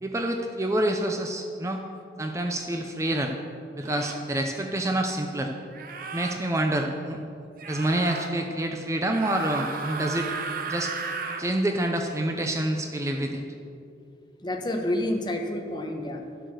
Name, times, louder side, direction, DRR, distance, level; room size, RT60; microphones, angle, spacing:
voice 1, 0.0-1.8 2.2-3.4 3.7-5.5 6.1-7.2 7.7-10.3 10.7-10.9 11.4-13.4, right 1 dB, 15° right, 3 dB, 0.6 m, -27 dB
sound 1, 2.4-2.6 3.8-4.3 5.7-6.4 7.6-8.3 9.1-11.5, right 4 dB, 55° right, 0.9 m, -34 dB
voice 2, 14.4-16.2, left 1 dB, 25° left, 2 dB, 1.2 m, -29 dB
12.0 x 7.8 x 6.4 m, 2.4 s
head